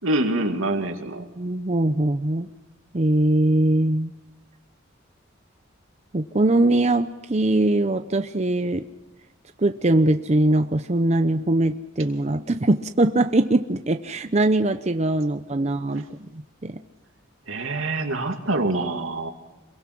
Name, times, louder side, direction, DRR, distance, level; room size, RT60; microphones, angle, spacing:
voice 1, 0.0-1.2 15.6-15.7 17.5-19.3, right 2 dB, 85° right, 4 dB, 2.5 m, -25 dB
voice 2, 1.2-2.5 2.9-4.1 6.1-8.9 9.6-16.8, right 2 dB, 35° right, 8 dB, 0.7 m, -22 dB
27.0 x 22.5 x 6.2 m, 1.1 s
head